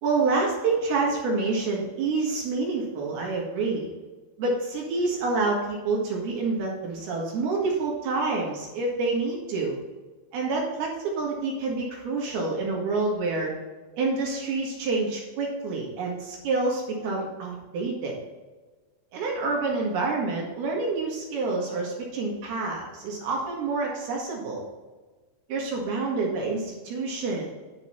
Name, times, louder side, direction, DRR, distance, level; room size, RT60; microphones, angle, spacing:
voice 1, 0.0-3.9 4.4-9.8 10.3-13.5 14.0-18.2 19.1-24.7 25.5-27.5, right 3 dB, 60° right, -2 dB, 3.1 m, -27 dB
11.5 x 5.8 x 4.3 m, 1.3 s
omnidirectional pair, 5.7 m